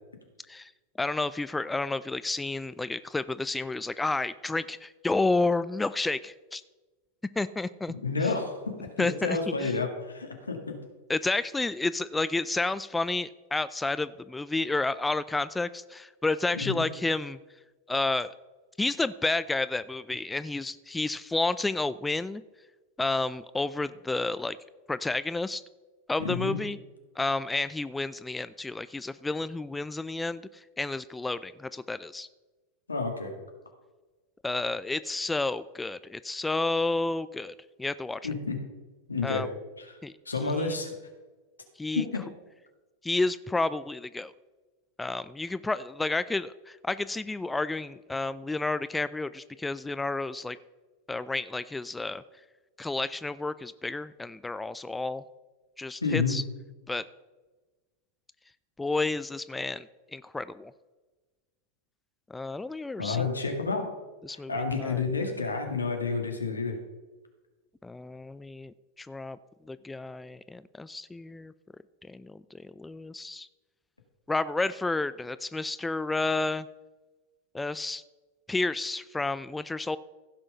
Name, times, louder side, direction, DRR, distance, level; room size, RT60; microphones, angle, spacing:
voice 1, 1.0-6.6 7.4-7.9 8.2-8.3 9.0-9.8 11.1-17.4 17.9-18.3 18.8-22.4 23.0-24.6 24.9-25.6 26.1-26.8 27.2-32.3 34.4-38.3 39.2-39.5 40.0-40.1 40.4-40.7 41.8-42.0 43.0-44.3 45.0-50.6 51.1-52.2 52.8-55.2 55.8-56.4 56.9-57.0 58.8-60.7 62.3-63.3 64.2-65.0 67.8-69.4 69.7-71.5 72.1-73.5 74.3-76.7 77.5-78.0 78.5-80.0, left 3 dB, 10° left, 16 dB, 0.4 m, -31 dB
voice 2, 8.0-10.8 16.5-16.8 26.2-26.6 32.9-33.3 38.2-38.6 39.1-39.4 39.9-40.0 40.3-40.9 41.9-42.2 56.0-56.4 63.0-63.9 64.3-66.8, left 4 dB, 85° left, 4 dB, 1.9 m, -30 dB
15.5 x 6.2 x 5.5 m, 1.2 s
figure-of-eight pair, 90°, 0 cm